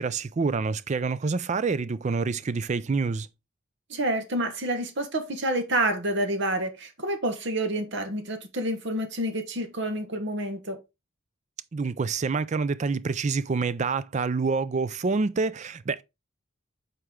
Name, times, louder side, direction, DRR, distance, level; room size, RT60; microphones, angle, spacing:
voice 1, 0.0-3.3 11.7-16.0, right 4 dB, 35° right, 0.4 m, -27 dB
voice 2, 3.9-10.8, right 1 dB, 60° right, 1.3 m, -28 dB
8.0 x 4.5 x 3.6 m
head